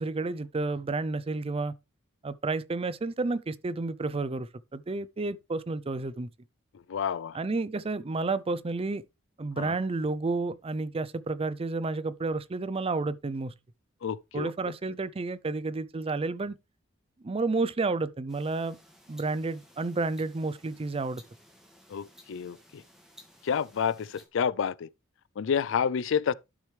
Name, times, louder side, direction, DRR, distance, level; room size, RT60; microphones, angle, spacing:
voice 1, 0.0-1.7 2.2-6.3 7.3-9.0 9.4-13.5 14.3-16.6 17.2-18.8 19.1-21.2, right 3 dB, 30° right, 0.5 m, -31 dB
voice 2, 6.9-7.4 9.6-9.7 14.0-14.5 21.9-22.8 23.4-24.9 25.4-26.3, left 7 dB, 65° left, 0.4 m, -29 dB
sound 1, 18.3-24.3, equal, 5° right, 1.9 m, -57 dB
11.5 x 6.3 x 3.3 m
head